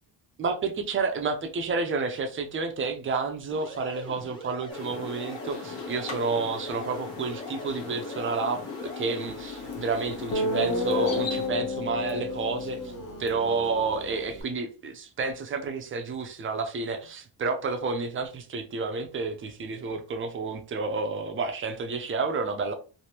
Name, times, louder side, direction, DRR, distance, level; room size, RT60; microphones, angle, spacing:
voice 1, 0.4-8.6 9.0-12.9 13.2-22.7, right 4 dB, 30° right, 0.4 m, -30 dB
sound 1, 3.5-9.3, equal, 10° left, 0.6 m, -43 dB
sound 2, 4.7-11.5, left 5 dB, 70° left, 1.1 m, -38 dB
Guitar, 9.7-9.8 10.3-14.4, left 2 dB, 45° left, 0.8 m, -31 dB
3.2 x 2.5 x 2.8 m
cardioid pair, 170°, 45 cm